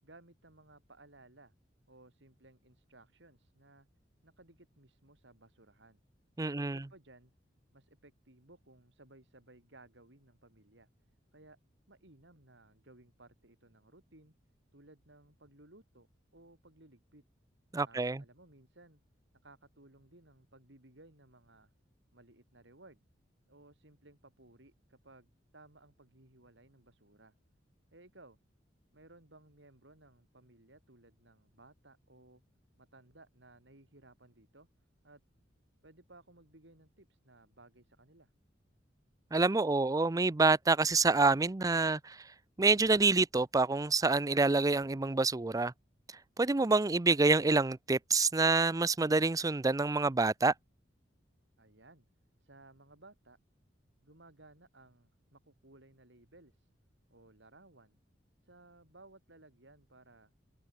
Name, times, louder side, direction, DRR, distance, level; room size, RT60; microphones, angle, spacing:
voice 1, 0.0-1.5 1.9-3.9 4.2-6.0 6.5-7.3 7.7-10.9 11.3-11.6 11.9-14.3 14.7-16.1 16.3-17.2 17.8-19.0 19.4-21.7 22.1-23.0 23.5-27.3 27.9-28.4 28.9-32.4 32.8-34.7 35.0-35.2 35.8-38.3 51.6-52.1 52.4-53.4 54.0-56.7 57.1-58.0 58.4-60.3, right 2 dB, 70° right, 4.6 m, -59 dB
voice 2, 6.4-6.8 17.7-18.2 39.3-42.2 42.6-45.7 46.4-50.5, right 3 dB, 20° right, 0.5 m, -27 dB
head